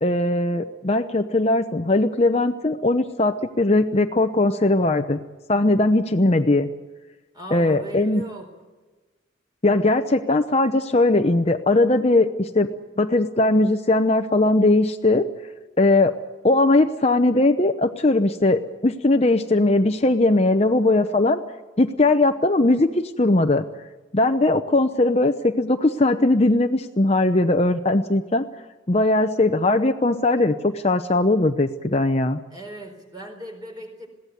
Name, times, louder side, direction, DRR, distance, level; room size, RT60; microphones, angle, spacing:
voice 1, 0.0-5.2 5.5-6.7 7.5-8.2 9.6-12.7 13.0-15.2 15.8-16.1 16.4-21.4 21.8-23.7 24.1-28.4 28.9-32.4, left 2 dB, 30° left, 7 dB, 0.8 m, -19 dB
voice 2, 7.3-8.5 32.5-34.1, equal, 20° right, 4 dB, 4.3 m, -38 dB
21.5 x 17.0 x 9.4 m, 1.2 s
head